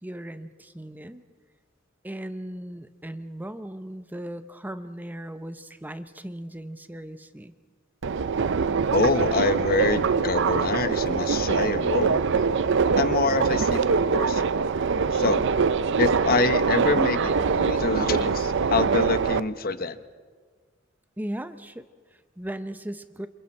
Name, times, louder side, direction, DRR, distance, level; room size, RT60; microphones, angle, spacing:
voice 1, 0.0-1.2 2.0-7.5 21.2-23.3, right 1 dB, 10° right, 10 dB, 0.7 m, -37 dB
Subway metro underground, 8.0-19.4, right 5 dB, 65° right, 0.5 m, -23 dB
voice 2, 8.9-12.2 13.0-14.4 15.1-15.4 16.0-20.0, left 3 dB, 50° left, 11 dB, 1.0 m, -26 dB
28.0 x 27.5 x 4.4 m, 1.5 s
head